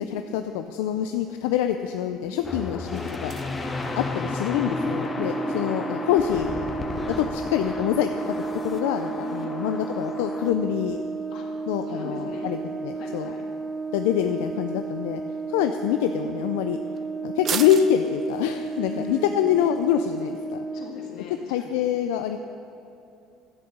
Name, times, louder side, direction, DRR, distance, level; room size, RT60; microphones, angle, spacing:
voice 1, 0.0-3.3 4.0-6.5 7.2-8.4 8.6-11.0 11.7-13.3 13.9-15.2 15.5-16.8 17.2-20.7 21.5-22.4, left 10 dB, 85° left, 7 dB, 0.4 m, -25 dB
sound 1, 1.0-20.6, right 8 dB, 45° right, 0.6 m, -44 dB
sound 2, 2.4-10.5, left 2 dB, 25° left, 1.0 m, -33 dB
Brass instrument, 4.6-21.0, right 4 dB, ahead, 0.9 m, -33 dB
voice 2, 9.2-9.5 11.3-11.5 11.9-12.5 12.9-13.4 18.8-19.6 20.7-21.8, left 4 dB, 65° left, -1 dB, 1.9 m, -40 dB
11.5 x 7.8 x 6.7 m, 2.7 s
supercardioid pair, 95°, 0 cm